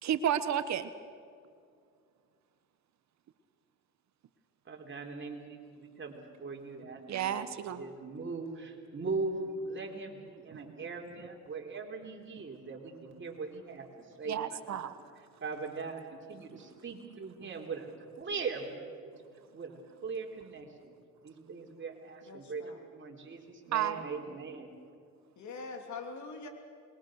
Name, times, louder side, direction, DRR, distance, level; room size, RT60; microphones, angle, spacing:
voice 1, 0.0-0.9 7.1-7.8 14.3-15.0 23.7-24.0, right 9 dB, 65° right, 12 dB, 1.2 m, -31 dB
voice 2, 4.7-7.4 7.8-14.9 15.4-17.9 18.2-19.2 19.5-20.9 21.2-22.6 22.9-24.7, right 4 dB, 40° right, 2 dB, 4.0 m, -40 dB
voice 3, 22.2-22.8 24.3-24.4 25.4-26.5, left 4 dB, 70° left, 4 dB, 3.3 m, -43 dB
26.5 x 22.0 x 6.5 m, 2.3 s
cardioid pair, 90°, 30 cm